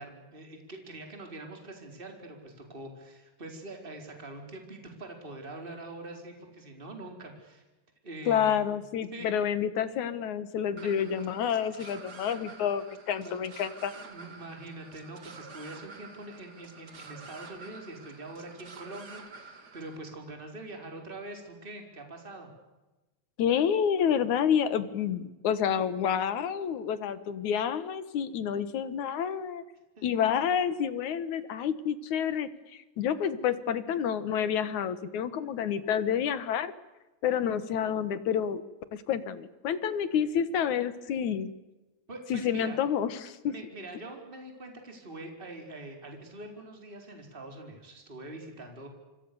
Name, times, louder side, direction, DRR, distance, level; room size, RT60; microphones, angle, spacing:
voice 1, 0.0-7.6 8.0-8.6 9.1-9.3 11.6-12.0 13.1-13.4 14.0-22.5 30.0-30.1 42.1-42.8 43.4-48.9, right 2 dB, 15° right, 3 dB, 4.6 m, -44 dB
voice 2, 8.3-13.9 23.4-29.6 30.0-36.7 37.2-38.6 38.9-41.5 42.3-43.5, left 8 dB, 70° left, 14 dB, 2.7 m, -29 dB
sound 1, 10.8-20.0, right 4 dB, 35° right, 2.5 m, -49 dB
28.0 x 25.5 x 7.0 m, 1.1 s
omnidirectional pair, 3.6 m